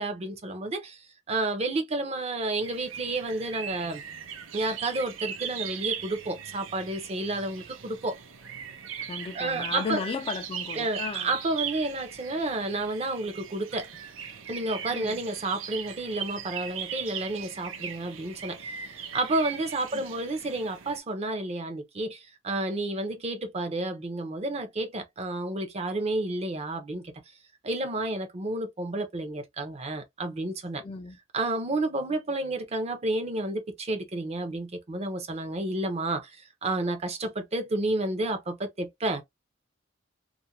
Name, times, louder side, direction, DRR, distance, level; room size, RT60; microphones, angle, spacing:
voice 1, 0.0-4.0 4.5-8.2 9.3-10.1 10.8-13.9 14.5-18.7 19.1-27.1 27.6-30.8 31.3-39.2, right 2 dB, 35° right, 0.6 m, -31 dB
sound 1, 2.6-21.0, right 8 dB, 85° right, 0.6 m, -39 dB
voice 2, 9.1-11.3 14.9-15.2 19.9-20.0 30.8-31.2, left 4 dB, 30° left, 0.3 m, -35 dB
2.4 x 2.1 x 2.7 m
head